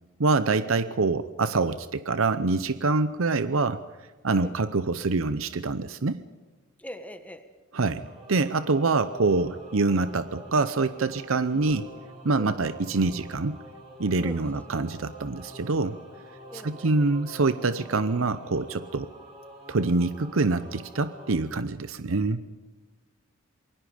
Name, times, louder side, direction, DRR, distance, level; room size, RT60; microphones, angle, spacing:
voice 1, 0.2-3.8 4.2-6.2 7.7-11.9 12.2-13.6 14.0-16.0 16.6-19.1 19.7-22.4, right 3 dB, 85° right, 12 dB, 0.7 m, -25 dB
voice 2, 6.8-7.4 12.4-12.6 14.2-14.6 16.5-17.2, equal, 5° left, 8 dB, 1.5 m, -42 dB
Singing / Musical instrument, 8.0-21.4, right 1 dB, 30° right, 7.8 m, -46 dB
28.0 x 22.0 x 5.1 m, 1.3 s
head